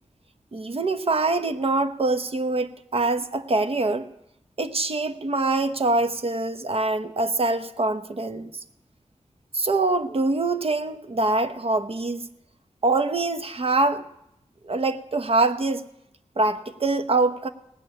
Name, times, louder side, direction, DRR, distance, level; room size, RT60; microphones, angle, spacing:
voice 1, 0.5-4.1 4.6-8.5 9.5-12.3 12.8-14.1 14.6-15.8 16.4-17.5, right 2 dB, 55° right, 9 dB, 0.9 m, -24 dB
18.5 x 6.9 x 8.6 m, 0.80 s
wide cardioid pair, 80°, 12 cm